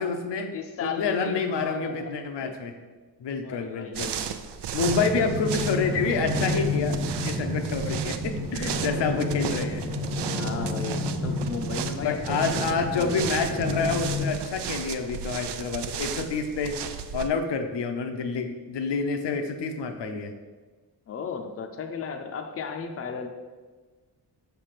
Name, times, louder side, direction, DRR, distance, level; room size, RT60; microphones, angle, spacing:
voice 1, 0.0-0.5 0.8-2.7 3.2-4.2 4.7-7.0 7.2-9.8 12.0-16.8 17.1-20.3, left 4 dB, 85° left, 6 dB, 0.8 m, -28 dB
voice 2, 0.5-2.2 2.4-2.5 3.4-4.2 8.6-9.6 10.3-13.3 21.1-23.3, left 6 dB, 35° left, 5 dB, 0.5 m, -36 dB
sound 1, 3.9-17.3, right 8 dB, 80° right, 0.5 m, -35 dB
sound 2, 4.8-14.3, left 1 dB, 15° right, 0.7 m, -30 dB
6.1 x 3.5 x 5.8 m, 1.3 s
wide cardioid pair, 150°, 41 cm